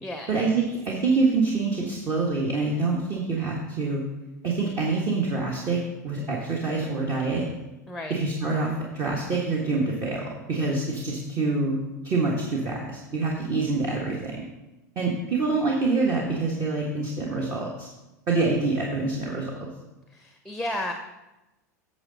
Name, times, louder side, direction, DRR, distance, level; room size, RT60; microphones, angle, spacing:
voice 1, 0.3-4.0 4.4-5.8 6.0-7.4 8.1-11.8 12.0-14.4 14.9-17.9 18.3-19.5, right 3 dB, 40° right, -2 dB, 1.5 m, -26 dB
voice 2, 20.1-20.9, left 1 dB, ahead, 4 dB, 0.8 m, -32 dB
8.8 x 6.6 x 4.1 m, 0.99 s
hypercardioid pair, 90°, 9 cm